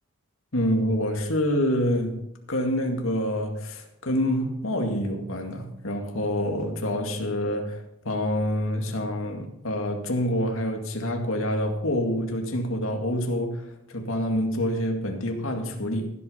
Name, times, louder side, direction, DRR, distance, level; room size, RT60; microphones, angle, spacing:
voice 1, 0.5-2.2 2.5-16.1, equal, 75° left, 3 dB, 2.1 m, -27 dB
15.0 x 8.3 x 5.7 m, 0.83 s
head